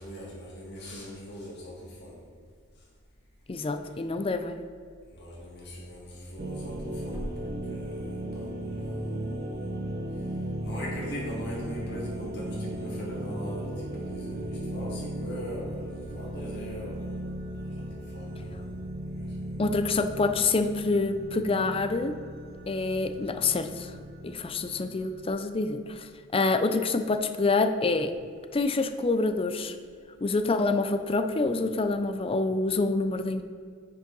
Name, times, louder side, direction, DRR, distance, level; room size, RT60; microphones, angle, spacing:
voice 1, 0.0-2.2 5.1-9.6 10.6-17.2 17.6-19.6, equal, 55° left, -4 dB, 1.7 m, -41 dB
voice 2, 3.5-4.6 19.6-22.1 22.7-23.9 24.2-26.1 26.3-28.1 28.5-29.7 30.2-33.4, left 3 dB, 25° left, 8 dB, 0.5 m, -27 dB
sound 1, 6.4-25.3, right 1 dB, 50° right, 0.8 m, -36 dB
10.0 x 5.5 x 3.9 m, 2.1 s
head